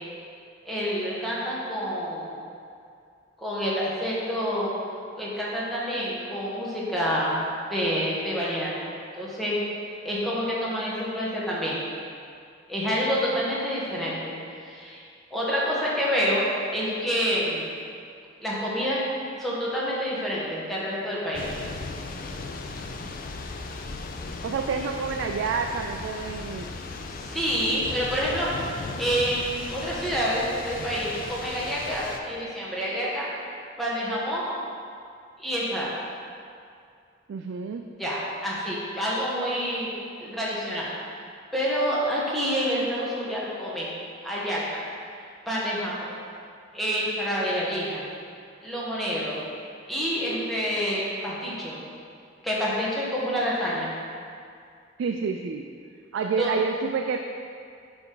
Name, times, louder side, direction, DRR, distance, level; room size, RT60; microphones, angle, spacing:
voice 1, 0.6-2.4 3.4-4.7 5.2-7.4 7.7-8.7 9.1-9.6 10.0-11.8 12.7-15.0 15.3-16.4 16.7-17.7 18.4-19.0 19.4-21.4 27.3-28.5 29.0-33.3 33.8-34.5 35.4-36.0 38.0-39.9 40.2-40.9 41.5-43.9 44.2-44.8 45.5-46.2 46.7-48.0 48.6-49.4 49.9-51.8 52.4-53.9 56.4-56.5, equal, ahead, -7 dB, 1.2 m, -28 dB
Thunder / Rain, 21.3-32.2, left 3 dB, 50° left, 0.4 m, -37 dB
voice 2, 24.4-26.7 37.3-37.8 55.0-55.7 56.1-57.2, right 5 dB, 70° right, 4 dB, 0.3 m, -28 dB
8.5 x 3.4 x 3.8 m, 2.3 s
head